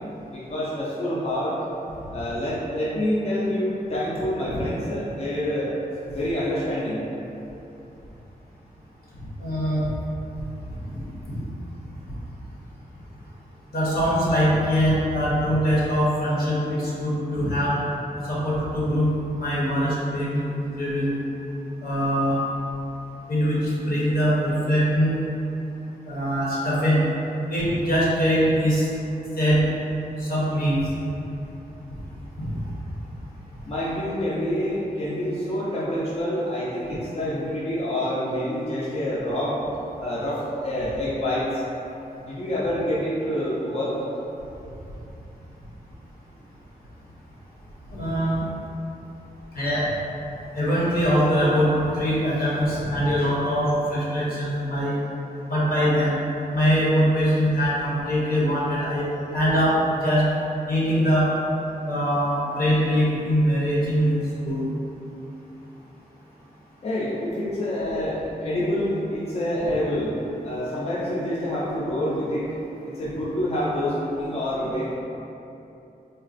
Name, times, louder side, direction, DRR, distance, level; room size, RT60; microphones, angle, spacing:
voice 1, 0.3-1.5 2.1-5.7 6.1-7.0 33.7-39.6 40.0-41.6 42.2-43.9 66.8-70.1 70.4-74.9, left 1 dB, 40° left, -8 dB, 0.5 m, -27 dB
voice 2, 9.4-9.9 10.9-11.0 13.7-17.7 18.3-21.1 21.8-22.4 23.3-25.2 26.1-27.0 27.5-28.9 29.4-29.6 30.2-30.8 32.4-32.5 47.9-48.4 49.5-49.9 50.5-55.0 55.5-56.2 56.5-59.7 60.0-60.2 60.7-61.3 61.9-64.1 64.4-64.6, equal, 75° left, -7 dB, 0.9 m, -22 dB
4.0 x 2.3 x 2.5 m, 2.9 s
wide cardioid pair, 115°, 16 cm